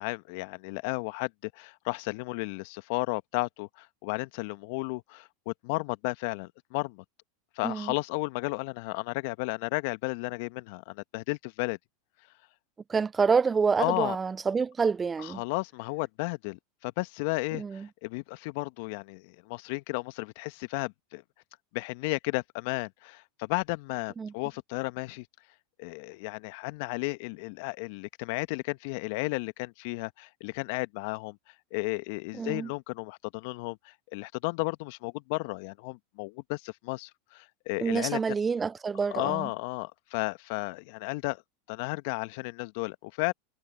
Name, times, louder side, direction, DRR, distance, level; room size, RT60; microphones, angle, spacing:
voice 1, 0.0-7.0 7.6-11.8 13.8-14.2 15.2-21.2 21.7-25.3 25.8-31.4 31.7-38.2 39.1-41.4 41.7-43.3, left 26 dB, 60° left, 1.4 m, -33 dB
voice 2, 7.6-7.9 12.9-15.4 17.5-17.9 24.2-24.3 32.4-32.7 37.8-39.5, right 5 dB, 20° right, 0.6 m, -27 dB
hypercardioid pair, 90°, 0 cm